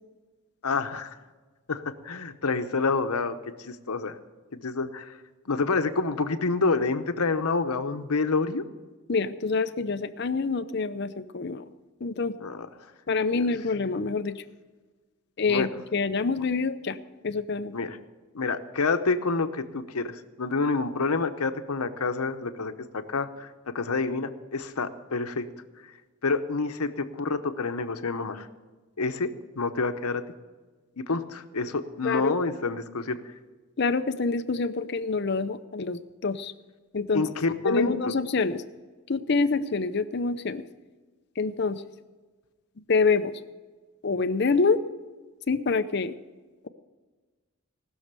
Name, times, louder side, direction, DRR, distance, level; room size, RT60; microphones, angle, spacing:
voice 1, 0.6-1.1 1.7-3.3 3.6-4.2 4.5-5.1 5.5-8.6 12.4-12.7 13.3-13.4 15.5-15.7 17.7-18.0 18.3-25.4 26.2-28.5 29.0-29.3 29.6-30.2 31.0-33.2 37.1-38.1, left 4 dB, 90° left, 9 dB, 0.9 m, -28 dB
voice 2, 9.1-11.6 12.0-12.3 13.1-14.3 15.4-17.0 17.2-17.7 32.0-32.4 33.8-36.5 36.9-37.2 37.6-38.6 39.1-40.6 41.4-41.8 42.9-43.3 44.0-44.8 45.5-46.1, left 4 dB, 50° left, 11 dB, 0.6 m, -26 dB
19.0 x 6.5 x 6.8 m, 1.3 s
head